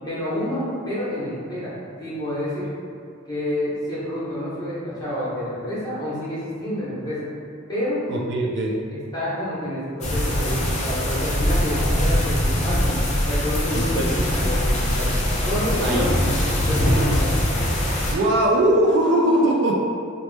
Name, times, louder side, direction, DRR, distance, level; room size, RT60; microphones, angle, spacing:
voice 1, 0.0-2.7 3.3-7.3 7.7-8.0 8.9-12.9 13.3-15.2 15.4-16.1 16.7-17.4, equal, 20° left, -10 dB, 1.0 m, -28 dB
voice 2, 8.1-8.7 13.8-14.0 15.8-16.0 18.1-19.7, right 1 dB, 60° right, -1 dB, 0.3 m, -20 dB
sound 1, 10.0-18.1, left 1 dB, 35° left, 0.5 m, -22 dB
2.9 x 2.0 x 3.2 m, 2.3 s
head